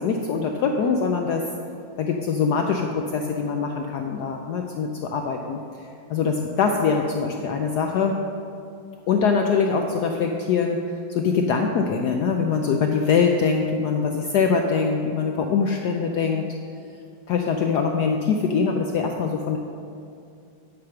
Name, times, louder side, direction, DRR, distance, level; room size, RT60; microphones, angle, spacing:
voice 1, 0.0-1.4 2.0-5.6 6.1-8.1 9.1-10.8 11.1-16.5 17.3-19.6, left 5 dB, 85° left, 3 dB, 0.9 m, -23 dB
9.6 x 5.0 x 5.8 m, 2.5 s
omnidirectional pair, 2.3 m